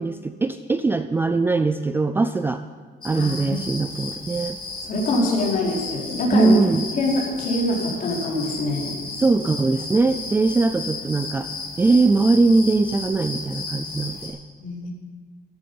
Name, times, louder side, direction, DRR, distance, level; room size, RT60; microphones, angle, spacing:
voice 1, 0.0-2.6 3.0-4.6 6.3-6.9 9.2-11.5 11.8-14.4, right 3 dB, 10° right, 10 dB, 0.4 m, -21 dB
sound 1, 3.0-14.3, left 3 dB, 25° left, 4.2 m, -34 dB
voice 2, 3.1-3.6 4.9-6.6 6.9-8.9 14.6-14.9, left 2 dB, 50° left, -3 dB, 3.9 m, -24 dB
14.0 x 14.0 x 5.4 m, 1.5 s
cardioid pair, 155°, 18 cm